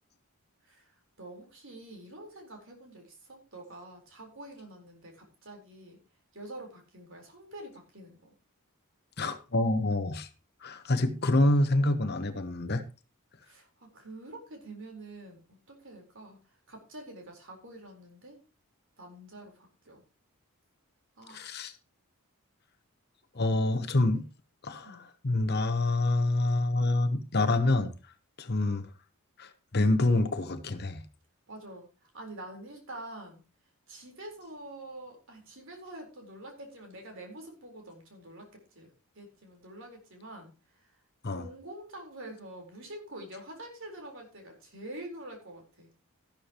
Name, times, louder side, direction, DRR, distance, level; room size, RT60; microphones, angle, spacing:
voice 1, 0.6-6.0 6.3-8.3 13.4-16.4 16.7-18.4 19.0-20.0 21.2-21.6 23.5-23.6 23.9-24.2 24.8-25.1 31.5-33.4 33.9-40.9 41.2-45.9, right 1 dB, 60° right, 2 dB, 4.3 m, -46 dB
voice 2, 9.2-10.3 10.6-12.8 21.3-21.7 23.3-24.2 24.6-25.0 25.2-27.9 28.4-28.9 29.4-31.0 41.2-41.4, left 2 dB, 45° left, 8 dB, 1.1 m, -27 dB
13.5 x 12.0 x 3.0 m, 0.32 s
head